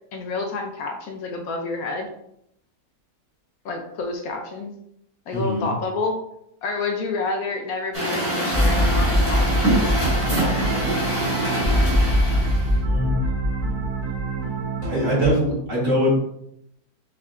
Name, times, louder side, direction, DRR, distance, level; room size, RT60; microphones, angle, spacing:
voice 1, 0.1-2.1 3.6-4.7 5.3-6.2 6.6-10.1, left 3 dB, 70° left, 3 dB, 1.0 m, -29 dB
voice 2, 5.3-5.7 12.8-13.2 14.8-16.2, equal, 55° right, -5 dB, 1.8 m, -22 dB
Truck, 7.9-12.8, right 1 dB, 10° right, 0.9 m, -24 dB
sound 1, 8.5-15.3, equal, 35° right, 1.0 m, -23 dB
4.5 x 3.2 x 2.5 m, 0.76 s
omnidirectional pair, 1.6 m